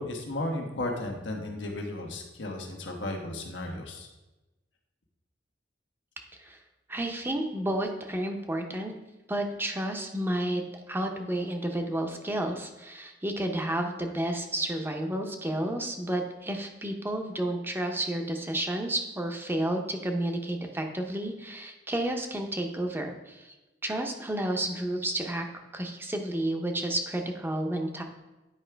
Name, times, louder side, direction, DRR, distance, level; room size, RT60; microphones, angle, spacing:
voice 1, 0.0-4.1, left 1 dB, 90° left, 2 dB, 1.2 m, -34 dB
voice 2, 6.9-8.9 9.3-23.5 23.8-25.5 25.7-28.0, right 1 dB, 10° right, 3 dB, 0.7 m, -31 dB
9.8 x 4.8 x 3.4 m, 1.1 s
head